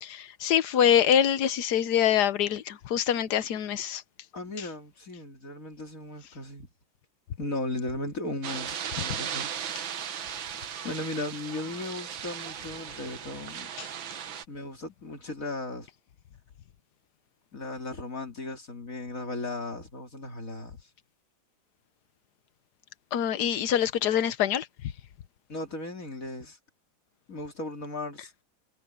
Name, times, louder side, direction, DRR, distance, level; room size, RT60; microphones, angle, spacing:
voice 1, 0.0-4.0 23.1-24.7, left 9 dB, 60° left, 1.4 m, -25 dB
voice 2, 4.3-6.7 7.4-9.5 10.0-10.1 10.8-13.7 14.5-15.9 17.5-20.8 25.5-26.6 27.3-28.3, left 2 dB, 40° left, 3.4 m, -36 dB
sound 1, 8.4-14.4, right 8 dB, 75° right, 2.0 m, -37 dB
omnidirectional pair, 2.1 m